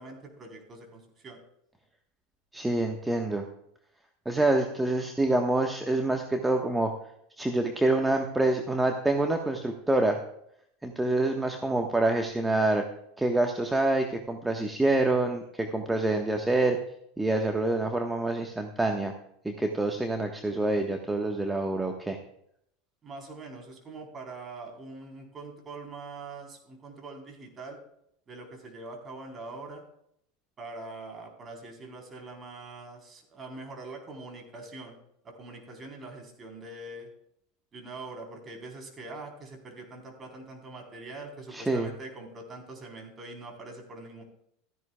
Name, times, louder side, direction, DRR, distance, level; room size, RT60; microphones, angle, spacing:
voice 1, 0.0-1.4 23.0-27.8 28.3-29.8 30.6-35.0 35.2-37.1 37.7-44.2, right 2 dB, 30° right, 2 dB, 3.9 m, -43 dB
voice 2, 2.5-3.5 4.2-6.9 7.4-10.2 10.8-12.8 13.2-16.8 17.2-19.1 19.4-22.2 41.5-41.9, right 2 dB, 10° right, 3 dB, 1.3 m, -26 dB
15.5 x 14.0 x 2.3 m, 0.72 s
figure-of-eight pair, 80°, 0 cm